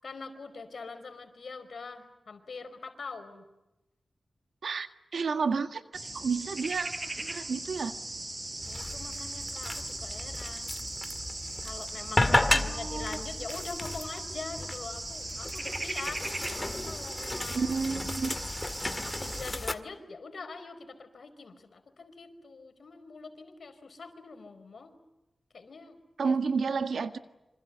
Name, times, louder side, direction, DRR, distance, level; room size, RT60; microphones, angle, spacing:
voice 1, 0.0-3.4 8.6-10.7 11.6-16.2 16.6-17.7 19.0-25.0 25.5-26.3 27.0-27.1, left 4 dB, 70° left, 8 dB, 4.7 m, -43 dB
voice 2, 4.6-8.0 12.5-13.2 17.5-18.4 26.2-27.2, right 5 dB, 85° right, 8 dB, 1.6 m, -31 dB
sound 1, 5.9-19.4, right 2 dB, 30° right, 4.8 m, -39 dB
sound 2, 8.6-19.7, left 2 dB, 25° left, 2.0 m, -33 dB
27.0 x 26.0 x 8.1 m, 0.97 s
wide cardioid pair, 80°, 0 cm